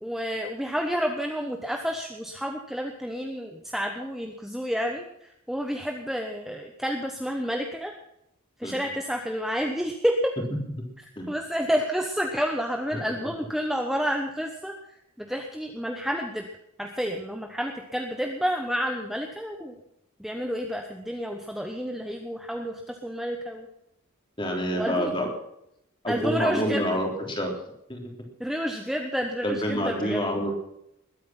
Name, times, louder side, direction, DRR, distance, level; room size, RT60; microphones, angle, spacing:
voice 1, 0.0-7.9 8.6-10.3 11.3-16.5 16.8-19.8 20.2-23.7 24.7-25.1 26.1-27.0 28.4-30.2, equal, ahead, 3 dB, 1.0 m, -30 dB
voice 2, 24.4-25.3 26.0-27.5 27.9-28.1 29.4-30.5, equal, 20° left, 2 dB, 3.5 m, -28 dB
21.0 x 9.4 x 5.9 m, 0.79 s
head